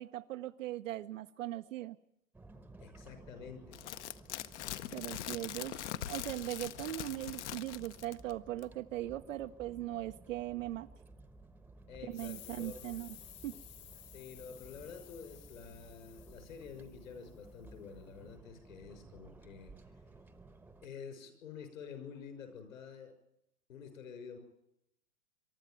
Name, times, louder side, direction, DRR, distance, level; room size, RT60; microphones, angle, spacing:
voice 1, 0.0-2.0 4.9-5.8 6.1-10.9 12.1-13.1 13.4-13.5, right 14 dB, 65° right, 7 dB, 0.7 m, -39 dB
sound 1, 2.3-20.9, right 2 dB, 5° right, 0.9 m, -56 dB
voice 2, 2.8-3.8 11.9-13.0 14.1-19.7 20.8-23.1 23.7-24.4, left 6 dB, 70° left, 8 dB, 6.2 m, -49 dB
sound 2, 3.7-8.3 8.6-8.7, left 12 dB, 55° left, 0.9 m, -42 dB
sound 3, 12.1-17.4, left 13 dB, 25° left, 0.8 m, -55 dB
23.5 x 12.5 x 9.2 m, 0.79 s
hypercardioid pair, 120°, 42 cm